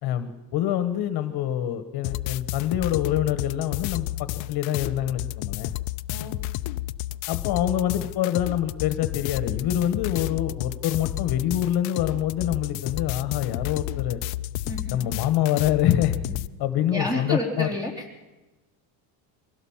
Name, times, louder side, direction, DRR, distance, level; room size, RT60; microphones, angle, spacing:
voice 1, 0.0-5.7 7.3-14.2 14.9-16.2 16.6-17.7, left 11 dB, 55° left, 11 dB, 1.4 m, -26 dB
sound 1, 2.0-16.5, left 17 dB, 85° left, 0.7 m, -31 dB
voice 2, 14.7-15.2 16.9-18.2, left 1 dB, 10° right, 2 dB, 3.6 m, -30 dB
23.5 x 16.0 x 7.3 m, 1.1 s
cardioid pair, 140°, 45 cm